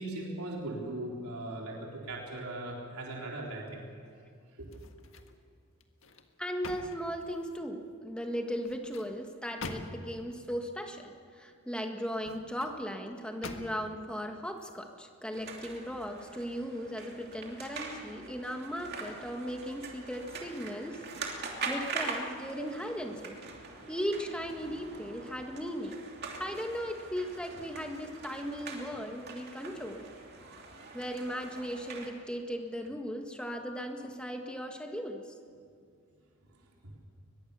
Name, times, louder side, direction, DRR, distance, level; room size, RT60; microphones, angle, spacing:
voice 1, 0.0-3.8 4.5-4.8 30.6-30.7 36.8-36.9, right 1 dB, 85° right, -2 dB, 4.0 m, -39 dB
sound 1, 4.6-5.4 5.8-7.8 8.5-10.2 12.0-12.8 13.4-14.0 14.5-14.7, left 2 dB, 65° left, 1.7 m, -45 dB
voice 2, 6.4-23.4 23.9-26.0 26.4-30.1 30.9-35.2, equal, 5° left, 3 dB, 1.7 m, -37 dB
sound 2, 15.3-32.1, right 4 dB, 45° right, 3.0 m, -43 dB
23.0 x 21.0 x 6.9 m, 2.2 s
head